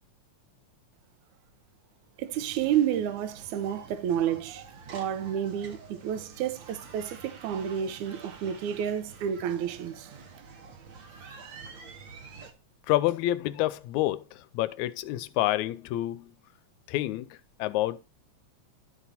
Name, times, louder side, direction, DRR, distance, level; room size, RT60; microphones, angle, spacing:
voice 1, 2.2-4.6 4.9-10.1, right 9 dB, 80° right, 2.1 m, -30 dB
sound 1, 2.3-12.5, right 5 dB, 55° right, 1.4 m, -48 dB
voice 2, 12.9-16.3 16.9-18.0, left 15 dB, 80° left, 1.9 m, -28 dB
12.0 x 4.1 x 4.2 m
omnidirectional pair, 3.4 m